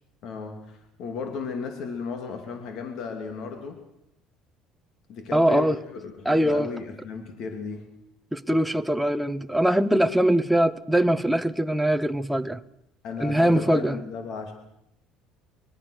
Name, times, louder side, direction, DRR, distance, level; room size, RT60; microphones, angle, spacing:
voice 1, 0.2-3.8 5.1-7.8 13.0-14.5, left 5 dB, 55° left, 2.8 m, -35 dB
voice 2, 5.3-5.8 6.2-6.7 8.3-12.6 13.2-14.0, right 1 dB, 5° right, 0.8 m, -22 dB
24.5 x 22.5 x 6.5 m
cardioid pair, 150°, 0 cm